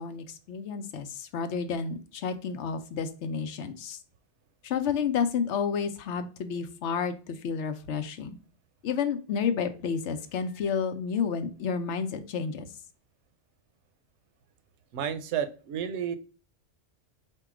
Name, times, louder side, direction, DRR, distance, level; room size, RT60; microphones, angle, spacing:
voice 1, 0.0-4.0 4.6-8.4 8.8-12.7, left 6 dB, 80° left, 9 dB, 0.9 m, -30 dB
voice 2, 14.9-16.2, right 8 dB, 80° right, 11 dB, 0.8 m, -31 dB
4.4 x 2.3 x 4.7 m, 0.37 s
omnidirectional pair, 1.2 m